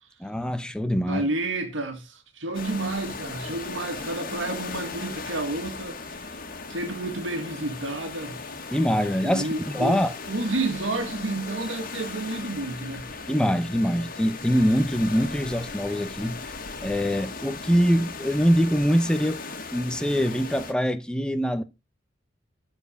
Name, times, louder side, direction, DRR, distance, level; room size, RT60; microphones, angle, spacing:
voice 1, 0.2-1.2 8.7-10.1 13.3-16.4 16.8-19.4 19.7-21.6, equal, 5° left, 0.8 m, -24 dB
voice 2, 1.0-6.4 6.7-8.4 9.2-13.1, right 2 dB, 80° right, 2.0 m, -30 dB
sound 1, 2.5-20.7, left 4 dB, 50° left, 1.9 m, -37 dB
13.5 x 4.6 x 7.2 m
head